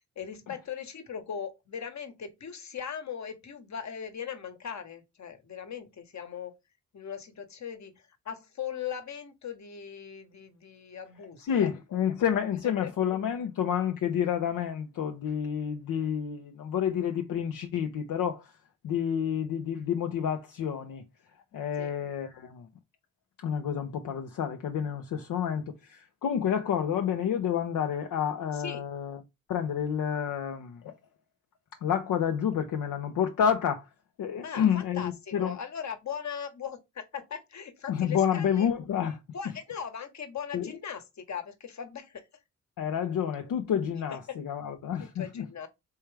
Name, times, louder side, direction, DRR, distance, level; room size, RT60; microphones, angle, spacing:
voice 1, 0.2-6.5 6.9-11.7 12.6-12.9 21.5-21.9 28.5-28.8 34.4-38.7 39.3-42.2 45.0-45.7, left 7 dB, 55° left, 1.3 m, -39 dB
voice 2, 11.5-18.5 18.8-21.0 21.5-22.7 23.4-29.2 29.5-30.9 31.8-33.9 34.2-35.6 37.9-39.2 40.5-40.8 42.8-45.4, left 8 dB, 75° left, 0.8 m, -29 dB
4.3 x 3.5 x 3.3 m
supercardioid pair, 45°, 33 cm